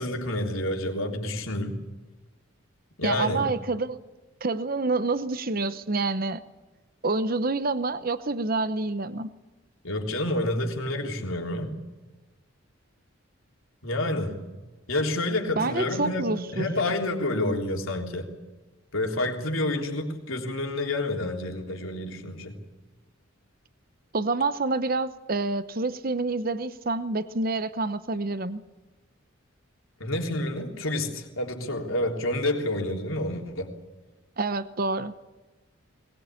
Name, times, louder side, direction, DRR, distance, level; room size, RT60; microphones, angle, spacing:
voice 1, 0.0-1.8 3.0-3.5 9.8-11.8 13.8-14.4 14.9-18.3 18.9-22.6 30.0-33.8, left 1 dB, 75° left, 2 dB, 3.4 m, -29 dB
voice 2, 3.0-4.0 4.4-6.4 7.0-9.3 15.6-16.7 24.1-28.6 34.4-35.1, right 3 dB, 45° right, 12 dB, 0.8 m, -27 dB
21.0 x 20.5 x 8.4 m, 1.2 s
head